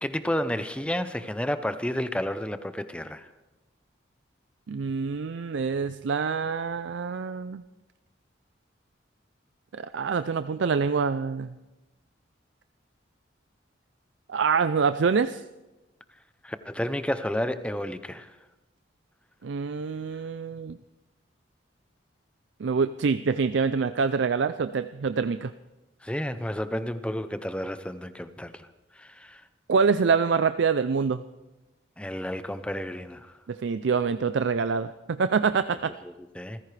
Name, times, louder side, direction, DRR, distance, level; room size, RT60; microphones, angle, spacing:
voice 1, 0.0-3.3 16.4-18.3 26.0-28.7 29.0-29.4 32.0-33.3 36.0-36.6, equal, 5° left, 0.6 m, -31 dB
voice 2, 4.7-7.6 9.7-11.5 14.3-15.4 19.4-20.8 22.6-25.5 29.7-31.2 33.5-35.9, right 5 dB, 70° right, 0.4 m, -26 dB
28.0 x 15.5 x 3.3 m
head